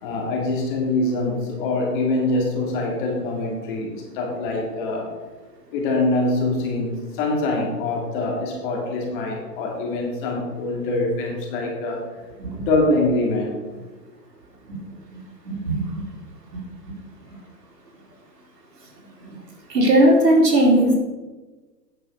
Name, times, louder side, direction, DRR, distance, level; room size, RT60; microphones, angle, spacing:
voice 1, 0.0-5.1 5.7-12.1 12.7-13.6, left 2 dB, 30° left, 0 dB, 2.5 m, -24 dB
voice 2, 15.5-16.0 19.7-21.0, right 1 dB, 85° right, 0 dB, 3.6 m, -17 dB
9.4 x 6.2 x 6.6 m, 1.2 s
hypercardioid pair, 155°, 48 cm